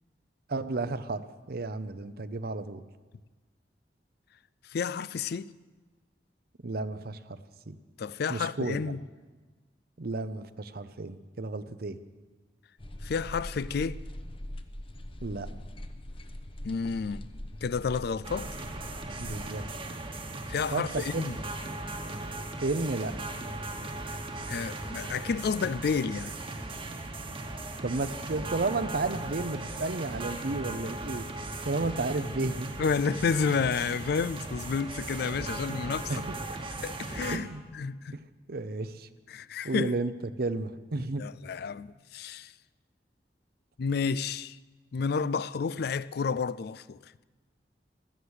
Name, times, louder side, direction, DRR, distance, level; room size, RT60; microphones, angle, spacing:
voice 1, 0.5-2.8 6.6-7.4 7.7-7.8 8.3-8.9 10.0-12.0 15.2-15.5 19.2-19.6 20.7-21.2 22.6-23.1 27.8-31.2 31.6-32.7 36.1-36.4 37.3-37.6 38.5-39.1 39.6-40.1 40.4-41.2, right 3 dB, 60° right, 0.7 m, -32 dB
voice 2, 4.6-5.5 8.0-9.0 13.0-14.0 16.6-17.3 17.6-18.5 20.5-21.4 24.5-26.3 32.8-36.2 36.8-38.2 39.3-39.9 41.2-42.5 43.8-44.6 44.9-47.1, left 5 dB, 60° left, 0.4 m, -30 dB
sound 1, 12.8-19.5, left 1 dB, 30° left, 0.8 m, -42 dB
sound 2, 18.2-37.4, right 2 dB, 30° right, 1.2 m, -38 dB
16.5 x 12.5 x 6.4 m
head